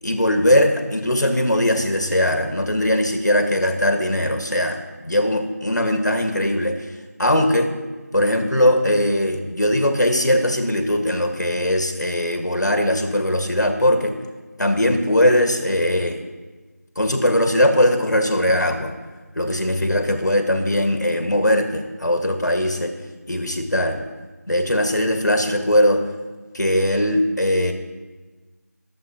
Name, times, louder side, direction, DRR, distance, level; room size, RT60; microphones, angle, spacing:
voice 1, 0.0-6.9 7.2-7.7 8.1-14.2 14.6-16.2 17.0-18.9 19.4-22.9 23.3-24.0 24.5-26.1 26.5-27.7, left 1 dB, 80° left, 5 dB, 1.7 m, -20 dB
20.5 x 7.6 x 2.9 m, 1.3 s
figure-of-eight pair, 180°, 9 cm